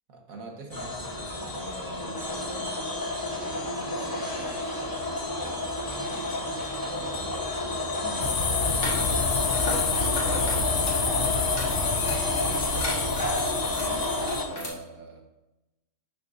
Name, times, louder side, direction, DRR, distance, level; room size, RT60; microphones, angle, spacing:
voice 1, 0.1-9.7 10.2-13.7 14.5-15.2, right 3 dB, 65° right, 1 dB, 1.8 m, -44 dB
sound 1, 0.7-14.4, left 2 dB, 15° left, 1.0 m, -30 dB
sound 2, 8.2-14.4, left 5 dB, 65° left, 0.4 m, -28 dB
sound 3, 8.6-14.7, left 1 dB, 85° left, 2.4 m, -37 dB
11.0 x 6.8 x 2.7 m, 0.97 s
omnidirectional pair, 1.6 m